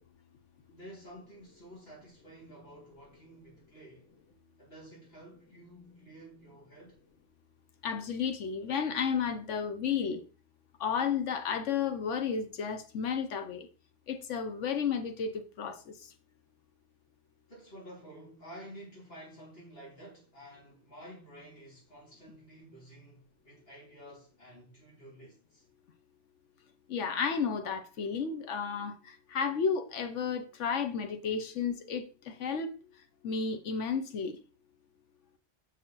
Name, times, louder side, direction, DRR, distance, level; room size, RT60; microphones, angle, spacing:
voice 1, 0.7-4.1 4.6-7.0 17.5-25.7, right 1 dB, 55° left, 4.4 m, -51 dB
voice 2, 7.8-10.2 10.8-13.7 14.1-15.9 26.9-29.0 29.3-32.7 33.2-34.4, left 6 dB, 85° left, 1.2 m, -32 dB
6.6 x 6.1 x 3.8 m
omnidirectional pair, 1.2 m